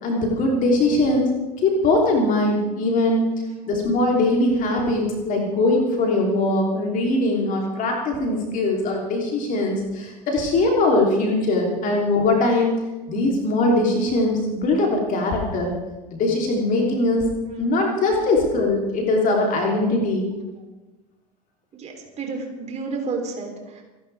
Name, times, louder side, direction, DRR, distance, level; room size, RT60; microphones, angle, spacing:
voice 1, 0.0-1.3 1.6-3.3 3.7-12.7 13.1-15.7 16.1-17.3 17.6-20.3, left 2 dB, 40° left, 0 dB, 3.3 m, -21 dB
voice 2, 21.7-23.8, right 4 dB, 30° right, 2 dB, 3.5 m, -31 dB
28.5 x 12.0 x 3.5 m, 1.1 s
figure-of-eight pair, 75°, 21 cm